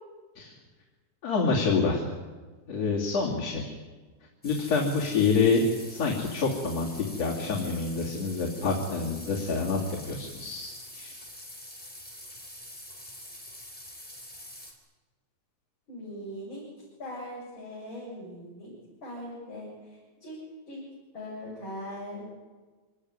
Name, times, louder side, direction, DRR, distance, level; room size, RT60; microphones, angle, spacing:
voice 1, 1.2-2.1 2.7-3.7 4.4-5.6 5.9-9.8 10.0-11.2, left 4 dB, 60° left, -3 dB, 4.1 m, -27 dB
sound 1, 4.4-14.7, left 1 dB, 5° left, 4.3 m, -45 dB
voice 2, 15.9-16.7 17.0-18.7 19.0-20.4 20.7-20.9 21.1-22.2, left 1 dB, 40° left, -6 dB, 7.6 m, -40 dB
26.5 x 18.0 x 9.9 m, 1.4 s
omnidirectional pair, 3.4 m